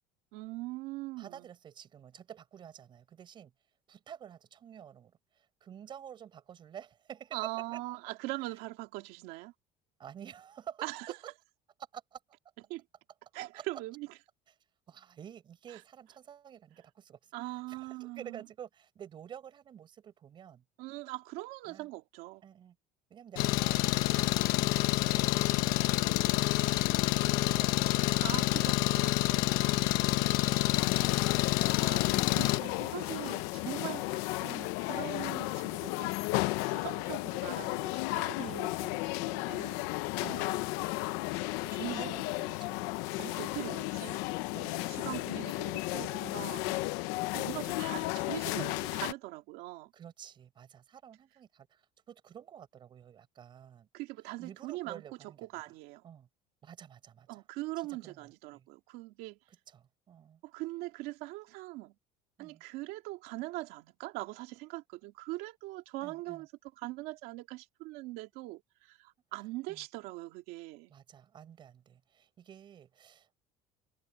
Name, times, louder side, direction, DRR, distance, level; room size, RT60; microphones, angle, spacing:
voice 1, 0.3-1.5 7.3-9.5 10.8-11.1 12.7-12.8 13.3-14.1 15.7-15.8 17.3-18.5 20.8-22.4 28.2-29.9 31.8-36.1 36.4-39.9 41.6-42.0 43.2-44.2 44.5-46.7 47.3-49.9 53.9-55.0 55.4-56.0 57.3-59.4 60.4-61.9 62.4-66.5 66.8-70.9, right 20 dB, 70° right, 2.6 m, -42 dB
voice 2, 1.2-3.5 3.9-7.8 10.0-11.1 11.9-12.2 13.5-13.7 14.9-20.6 21.6-21.9 22.4-22.8 23.1-28.9 29.6-31.0 33.9-34.3 35.4-35.6 40.2-40.7 41.9-42.8 44.5-44.8 46.7-46.8 49.9-53.9 54.4-55.6 56.0-56.3 56.6-57.4 57.9-58.7 59.7-60.4 62.4-62.6 66.0-66.4 69.7-69.8 70.9-73.3, right 9 dB, 30° right, 5.2 m, -50 dB
Engine, 23.4-32.6, left 18 dB, 65° left, 1.1 m, -28 dB
sound 1, 30.7-49.1, left 20 dB, 85° left, 0.9 m, -34 dB
cardioid pair, 180°, 16 cm